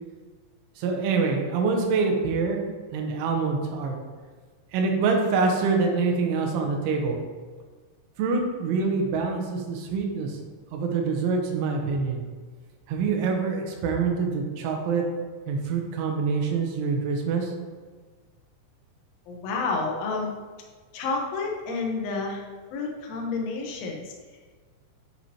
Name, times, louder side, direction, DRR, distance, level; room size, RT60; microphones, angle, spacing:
voice 1, 0.8-2.6 2.9-4.0 4.7-7.2 8.2-10.4 10.7-12.2 12.9-15.1 15.5-17.5, right 4 dB, 85° right, 2 dB, 3.5 m, -25 dB
voice 2, 19.3-20.4 20.9-22.4 22.7-24.1, left 3 dB, 85° left, 0 dB, 3.4 m, -30 dB
9.8 x 6.0 x 2.9 m, 1.4 s
omnidirectional pair, 5.4 m